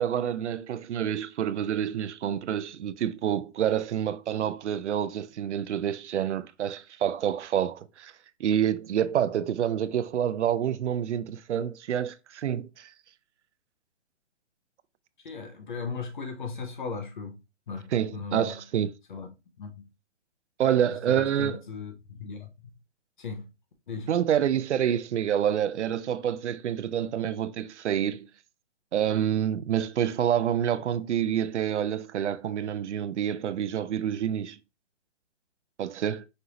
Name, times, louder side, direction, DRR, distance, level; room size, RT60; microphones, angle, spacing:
voice 1, 0.0-8.1 8.4-12.9 17.9-18.9 20.6-21.6 24.1-28.3 28.9-34.6 35.8-36.3, right 9 dB, 80° right, 0.5 m, -27 dB
voice 2, 15.2-18.6 19.1-19.3 19.6-19.8 20.9-22.7 23.2-23.5 23.9-24.1, left 5 dB, 45° left, 0.7 m, -38 dB
5.3 x 2.6 x 2.9 m
hypercardioid pair, 175°, 35 cm